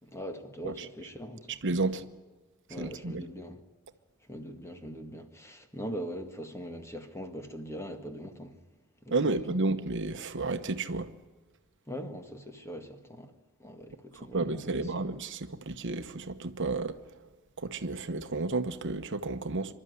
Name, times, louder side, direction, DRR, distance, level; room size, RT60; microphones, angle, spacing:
voice 1, 0.0-1.9 2.7-3.6 4.3-8.6 9.0-9.4 11.9-13.3 13.6-14.9, equal, 15° left, 1.8 m, -41 dB
voice 2, 1.6-2.0 2.7-3.2 9.1-11.1 14.2-17.0 17.6-19.7, right 3 dB, 60° right, 1.0 m, -32 dB
26.5 x 12.5 x 9.6 m
head